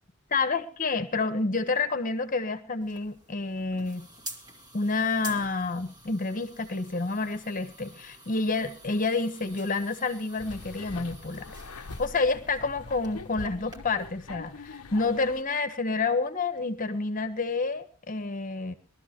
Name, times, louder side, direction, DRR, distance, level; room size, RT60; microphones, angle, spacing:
voice 1, 0.3-4.1 4.7-18.7, left 3 dB, 40° left, 10 dB, 1.4 m, -29 dB
sound 1, 2.8-13.8, right 1 dB, 20° right, 2.5 m, -48 dB
sound 2, 10.4-15.4, left 3 dB, 80° left, 0.9 m, -43 dB
22.0 x 13.0 x 3.0 m, 0.36 s
head